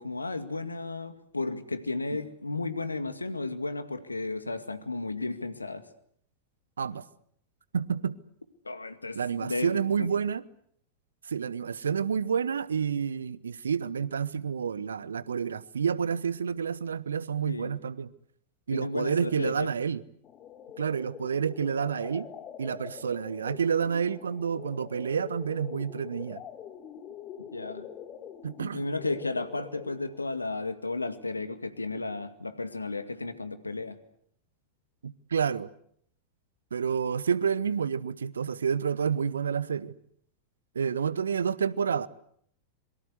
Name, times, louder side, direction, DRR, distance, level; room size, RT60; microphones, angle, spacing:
voice 1, 0.0-5.8 8.6-10.1 17.5-17.7 18.7-19.7 27.5-27.9 28.7-34.0, left 3 dB, 80° left, 2.1 m, -33 dB
voice 2, 7.7-8.2 9.1-10.4 11.2-18.1 18.7-20.0 20.8-22.3 22.6-26.4 28.4-28.8 35.0-35.7 36.7-39.9 40.7-42.1, right 7 dB, 70° right, 1.0 m, -29 dB
sound 1, 20.2-30.2, left 9 dB, 30° left, 3.3 m, -44 dB
26.5 x 23.5 x 8.1 m
figure-of-eight pair, 90°, 0 cm